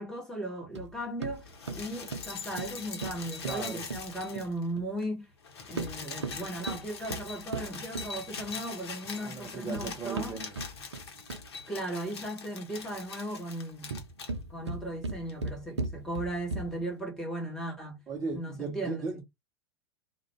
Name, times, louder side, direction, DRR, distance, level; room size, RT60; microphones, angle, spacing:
voice 1, 0.0-5.3 5.7-10.4 11.7-14.0 14.5-18.0 18.3-19.2, right 1 dB, 5° left, 1.2 m, -37 dB
sound 1, 0.7-4.9 5.6-8.7 9.4-11.6 13.7-16.9, right 3 dB, 80° right, 0.5 m, -39 dB
sound 2, 1.4-4.7 5.0-5.1 5.3-14.3 15.3-15.4, left 5 dB, 65° left, 0.8 m, -42 dB
voice 2, 3.4-3.8 9.2-10.6 18.1-19.2, right 4 dB, 25° right, 0.6 m, -37 dB
2.4 x 2.2 x 2.9 m
figure-of-eight pair, 85°, 14 cm